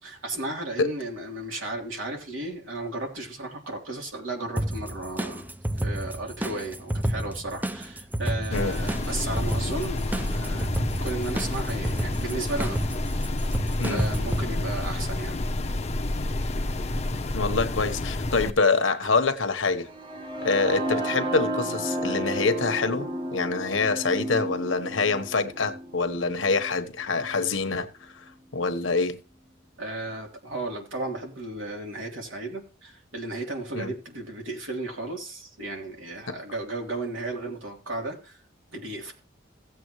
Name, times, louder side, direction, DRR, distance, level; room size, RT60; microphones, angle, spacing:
voice 1, 0.0-5.5 5.7-12.8 13.9-15.4 29.8-38.4 38.7-39.1, right 2 dB, 80° right, 3.2 m, -34 dB
sound 1, 4.6-14.4, right 1 dB, 10° right, 0.6 m, -31 dB
sound 2, 8.5-18.5, left 1 dB, 35° left, 0.7 m, -29 dB
voice 2, 17.3-19.9 20.4-27.9 28.5-29.2 33.7-33.9 36.3-36.4, left 4 dB, 75° left, 1.1 m, -25 dB
sound 3, 19.9-27.8, right 1 dB, 25° right, 1.0 m, -33 dB
16.5 x 7.8 x 3.1 m
head